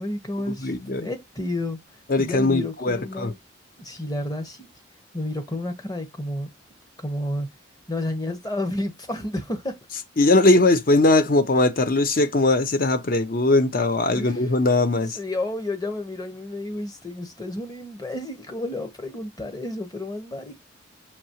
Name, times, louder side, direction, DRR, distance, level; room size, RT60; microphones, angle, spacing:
voice 1, 0.0-1.8 2.2-3.3 3.8-4.7 5.1-6.5 7.0-7.5 7.9-9.8 14.1-14.5 15.1-20.6, left 1 dB, 20° left, 0.9 m, -31 dB
voice 2, 0.6-1.1 2.1-3.3 10.2-15.2, left 2 dB, 45° left, 0.6 m, -20 dB
5.9 x 2.8 x 2.9 m
head